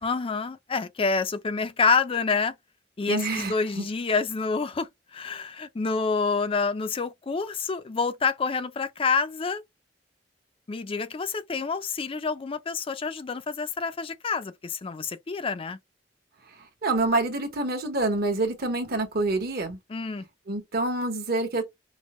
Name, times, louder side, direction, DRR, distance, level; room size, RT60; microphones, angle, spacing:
voice 1, 0.0-2.5 3.0-9.6 10.7-15.8 19.9-20.2, left 4 dB, 30° left, 0.4 m, -27 dB
voice 2, 3.1-3.8 16.8-19.8 20.5-21.6, right 2 dB, 60° right, 1.2 m, -27 dB
5.3 x 2.2 x 3.0 m
head